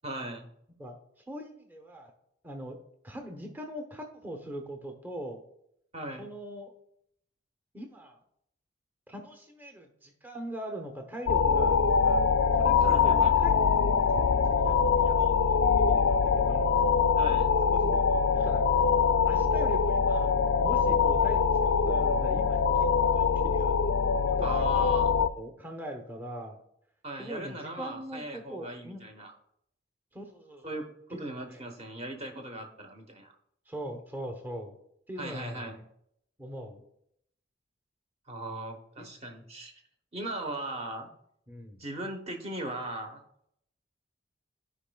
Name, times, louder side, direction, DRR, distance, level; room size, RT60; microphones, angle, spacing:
voice 1, 0.0-0.5 5.9-6.3 12.8-13.4 17.2-17.5 24.4-25.1 27.0-29.3 30.6-33.3 35.2-35.8 38.3-39.7 40.1-41.1 41.8-43.2, right 1 dB, 30° right, 4 dB, 1.0 m, -38 dB
voice 2, 1.3-2.1 2.4-2.8 3.0-5.4 6.2-6.7 7.7-8.2 9.1-12.3 12.6-13.6 14.2-16.7 17.7-18.6 19.2-20.3 20.6-22.9 23.1-23.7 24.3-24.7 25.4-26.6 27.2-29.0 30.1-30.7 31.1-31.6 33.7-34.8 35.1-35.8 36.4-36.8 39.0-39.1 41.5-41.8, right 1 dB, 10° right, 3 dB, 0.8 m, -41 dB
sound 1, 11.3-25.3, left 6 dB, 75° left, 0.4 m, -24 dB
13.5 x 5.0 x 2.3 m, 0.74 s
head